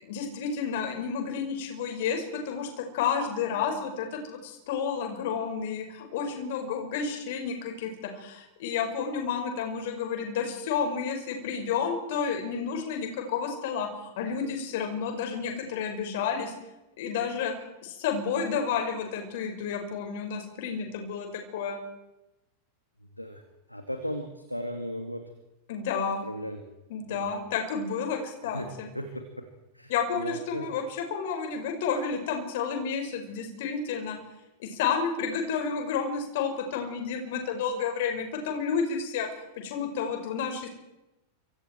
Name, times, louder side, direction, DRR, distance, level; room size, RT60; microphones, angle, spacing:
voice 1, 0.0-16.5 17.0-17.5 17.8-21.8 25.7-26.2 26.9-28.9 29.9-34.2 34.6-39.3 39.6-40.7, left 6 dB, 55° left, 4 dB, 5.4 m, -31 dB
voice 2, 23.7-25.2 26.2-26.6 27.1-27.3 28.4-28.7 28.9-29.2 29.7-30.7, equal, 90° left, 6 dB, 2.3 m, -36 dB
29.0 x 26.0 x 4.6 m, 0.95 s
figure-of-eight pair, 90°, 0 cm